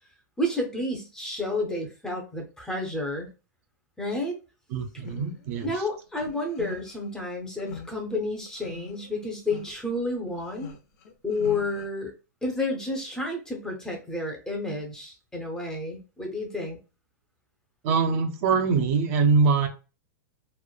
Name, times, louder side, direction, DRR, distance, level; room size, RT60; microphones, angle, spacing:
voice 1, 0.4-3.3 4.0-4.4 5.6-10.7 11.2-12.1 12.4-16.8, left 2 dB, 5° left, 0 dB, 0.5 m, -30 dB
voice 2, 4.7-5.7 17.8-19.7, right 5 dB, 50° right, 5 dB, 0.4 m, -23 dB
sound 1, 5.0-5.7 6.1-7.0 7.6-7.9 8.5-9.1 9.5-9.7 10.4-11.9, left 4 dB, 60° left, 0.6 m, -41 dB
3.0 x 2.0 x 2.2 m, 0.31 s
supercardioid pair, 150°, 10 cm